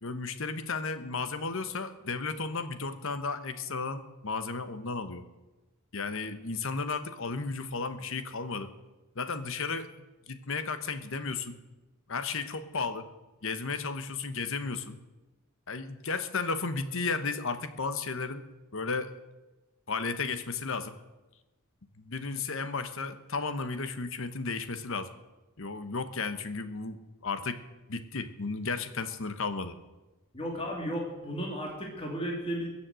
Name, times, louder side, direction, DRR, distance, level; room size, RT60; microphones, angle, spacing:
voice 1, 0.0-5.2 5.9-8.7 9.2-9.9 10.3-11.5 12.1-13.0 13.4-15.0 15.7-18.4 18.7-19.1 19.9-20.9 22.0-25.1 25.6-27.0 27.2-27.6 27.9-29.7, left 4 dB, 60° left, 11 dB, 1.1 m, -34 dB
voice 2, 30.3-32.7, equal, 25° left, -1 dB, 2.7 m, -34 dB
22.0 x 7.4 x 7.7 m, 1.1 s
head